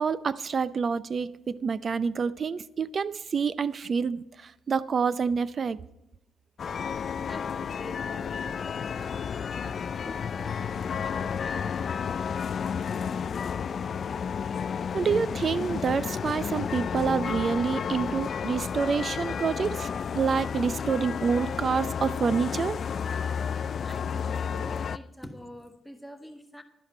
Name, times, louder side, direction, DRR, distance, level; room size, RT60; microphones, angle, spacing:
voice 1, 0.0-5.8 14.9-19.9 20.1-22.8, right 5 dB, 45° right, 0.5 m, -27 dB
sound 1, 6.6-25.0, left 7 dB, 50° left, 0.4 m, -32 dB
voice 2, 7.2-11.8 23.8-26.6, left 1 dB, 5° left, 1.4 m, -46 dB
11.5 x 11.0 x 4.4 m
cardioid pair, 90°, 0 cm